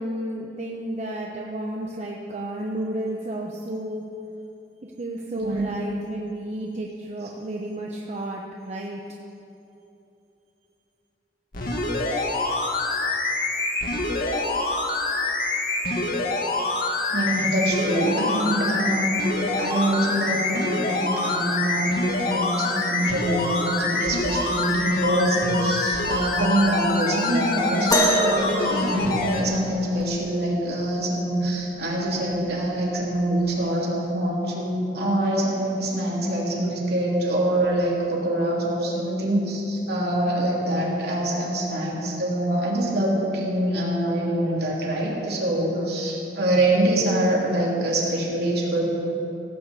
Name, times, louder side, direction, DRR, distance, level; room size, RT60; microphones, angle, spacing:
voice 1, 0.0-4.0 4.8-9.0, right 1 dB, 40° right, -1 dB, 0.9 m, -32 dB
voice 2, 5.3-5.7 17.1-19.2 19.6-48.9, right 1 dB, 65° right, -4 dB, 3.1 m, -24 dB
sound 1, 11.5-29.4 30.0-30.1, left 2 dB, 55° left, 1.8 m, -26 dB
sound 2, 27.9-29.8 31.5-31.6 32.3-32.6 33.5-33.6, equal, 20° left, 1.7 m, -24 dB
17.0 x 6.5 x 8.2 m, 2.9 s
head